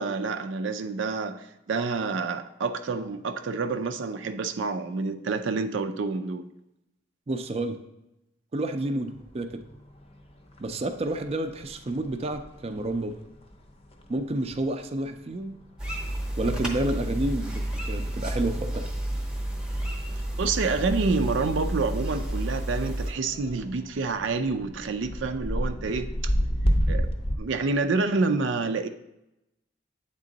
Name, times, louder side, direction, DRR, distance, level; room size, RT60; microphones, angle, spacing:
voice 1, 0.0-6.5 20.4-26.3 26.9-27.1 27.4-28.9, right 4 dB, 90° right, 7 dB, 0.4 m, -28 dB
voice 2, 7.3-7.8 8.5-9.6 10.6-13.2 14.1-15.5 16.4-18.9, right 1 dB, 35° right, 7 dB, 0.4 m, -30 dB
sound 1, 9.0-27.4, equal, 30° left, 0.6 m, -34 dB
sound 2, 15.8-23.1, right 1 dB, 5° right, 0.8 m, -31 dB
8.3 x 3.7 x 3.9 m, 0.88 s
head